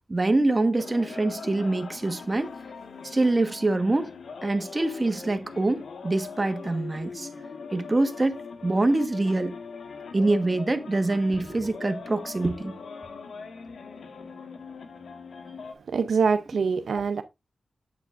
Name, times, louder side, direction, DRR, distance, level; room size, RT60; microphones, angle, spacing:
voice 1, 0.1-2.5 3.0-4.1 4.4-7.3 7.7-9.6 10.1-12.7, right 2 dB, 30° right, 1.3 m, -25 dB
sound 1, 0.8-15.7, left 5 dB, 85° left, 1.5 m, -41 dB
voice 2, 15.9-17.2, right 5 dB, 85° right, 0.6 m, -24 dB
9.0 x 7.8 x 2.5 m
cardioid pair, 55°, 0 cm